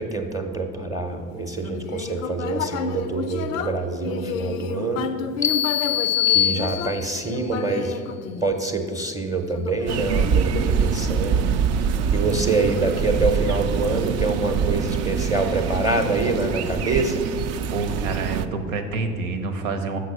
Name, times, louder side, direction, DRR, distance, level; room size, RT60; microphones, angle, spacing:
voice 1, 0.0-5.1 6.3-8.0 8.4-11.4 12.1-17.2, right 3 dB, 10° right, 6 dB, 0.7 m, -25 dB
Human voice, 1.6-8.9 9.5-11.0, left 6 dB, 85° left, 0.5 m, -31 dB
sound 1, 5.4-7.3, left 10 dB, 20° left, 0.4 m, -23 dB
sound 2, 9.9-18.5, right 6 dB, 40° right, 0.5 m, -24 dB
voice 2, 17.7-20.0, right 3 dB, 80° right, 7 dB, 0.9 m, -28 dB
6.4 x 5.9 x 5.9 m, 2.4 s
hypercardioid pair, 75°, 39 cm